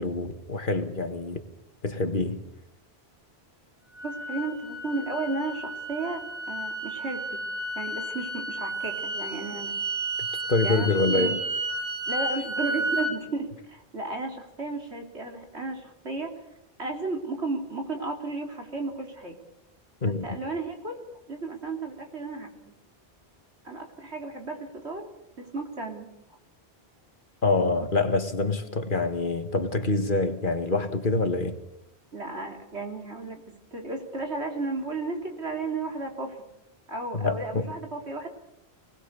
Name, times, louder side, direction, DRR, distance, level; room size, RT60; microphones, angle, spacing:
voice 1, 0.0-1.4 1.8-2.4 10.5-11.4 20.0-20.4 27.4-31.6 37.1-37.7, left 3 dB, 50° left, 1.8 m, -26 dB
sound 1, 4.0-13.1, right 2 dB, 30° right, 5.5 m, -32 dB
voice 2, 4.0-7.4 7.8-9.8 10.6-11.4 12.1-16.4 16.8-19.4 20.0-21.0 21.3-22.7 23.6-25.1 25.4-26.1 32.1-36.5 36.9-38.3, right 3 dB, 85° right, 3.6 m, -34 dB
25.5 x 19.5 x 6.8 m
omnidirectional pair, 1.1 m